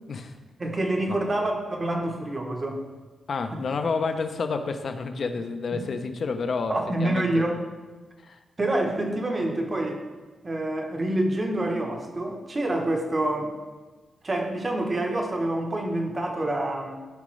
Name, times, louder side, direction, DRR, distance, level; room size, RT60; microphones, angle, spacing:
voice 1, 0.6-2.8 3.5-3.6 5.7-5.8 6.7-7.6 8.6-10.0 10.4-13.5 14.2-17.0, right 1 dB, 25° right, 2 dB, 1.0 m, -27 dB
voice 2, 3.3-6.7 7.0-7.4 8.2-8.4, left 4 dB, 45° left, 7 dB, 0.6 m, -29 dB
13.0 x 5.1 x 3.2 m, 1.2 s
wide cardioid pair, 160°, 0 cm